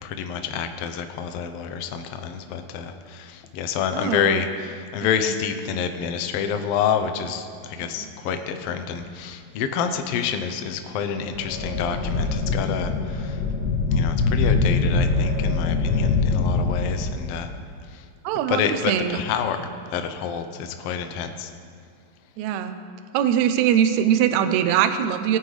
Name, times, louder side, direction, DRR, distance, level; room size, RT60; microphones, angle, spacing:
voice 1, 0.0-13.4 13.9-17.5 17.9-18.0 18.5-21.5, left 7 dB, 85° left, 7 dB, 1.3 m, -28 dB
voice 2, 3.9-4.4 8.0-8.1 18.2-19.2 22.4-22.7 23.1-25.4, right 9 dB, 75° right, 9 dB, 1.8 m, -22 dB
sound 1, 11.3-17.4, left 3 dB, 30° left, 2.5 m, -23 dB
20.5 x 9.3 x 3.3 m, 2.2 s
omnidirectional pair, 3.7 m